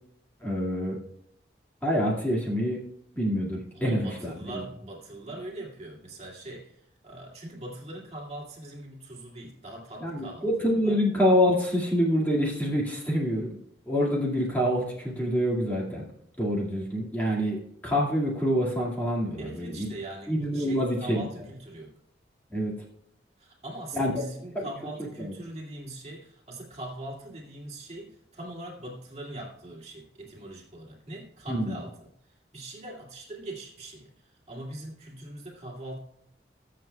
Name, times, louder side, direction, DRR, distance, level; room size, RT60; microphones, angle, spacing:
voice 1, 0.4-1.0 1.8-2.8 3.1-4.3 10.0-13.6 13.9-16.0 16.4-19.9 20.3-21.2 22.5-22.7 23.9-24.2 24.5-24.7 25.2-25.3 31.5-31.8, equal, 10° left, -4 dB, 2.0 m, -26 dB
voice 2, 3.7-6.8 7.0-10.5 10.8-11.0 19.4-21.9 23.4-32.1 32.5-36.0, right 1 dB, 35° right, -2 dB, 2.2 m, -41 dB
21.0 x 7.6 x 2.2 m, 0.74 s
head